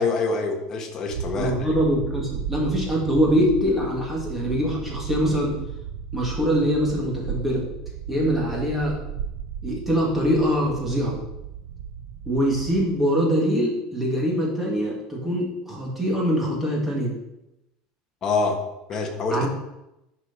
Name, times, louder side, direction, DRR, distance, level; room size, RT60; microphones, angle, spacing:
voice 1, 0.0-1.7 18.2-18.6 18.9-19.5, left 3 dB, 25° left, 2 dB, 1.4 m, -25 dB
sound 1, 1.1-12.9, right 7 dB, 75° right, 0.9 m, -34 dB
voice 2, 1.4-5.6 6.1-7.7 8.1-9.0 9.6-11.2 12.3-17.1 19.3-19.5, equal, 5° right, -3 dB, 2.2 m, -23 dB
10.5 x 5.0 x 6.0 m, 0.90 s
cardioid pair, 175°, 2 cm